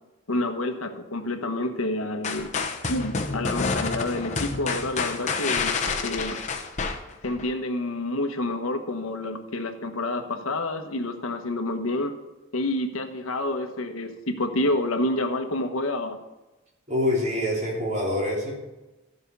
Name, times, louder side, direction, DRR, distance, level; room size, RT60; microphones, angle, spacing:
voice 1, 0.3-2.5 2.9-6.4 7.2-12.1 12.5-16.2, left 2 dB, 90° left, 6 dB, 1.2 m, -28 dB
sound 1, 2.2-7.5, left 4 dB, 35° left, 1.0 m, -28 dB
voice 2, 16.9-18.6, left 1 dB, 35° right, -3 dB, 3.4 m, -25 dB
14.0 x 5.5 x 6.8 m, 1.1 s
head